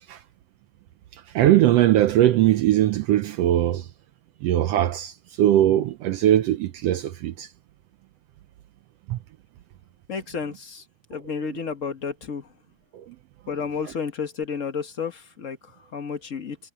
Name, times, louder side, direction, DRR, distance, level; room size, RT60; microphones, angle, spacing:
voice 1, 1.3-3.8 4.4-5.1 5.4-7.5 9.1-9.2, right 13 dB, 75° right, 1.5 m, -20 dB
voice 2, 10.1-10.8 11.1-12.5 13.5-16.6, left 6 dB, 75° left, 0.7 m, -31 dB
omnidirectional pair, 3.4 m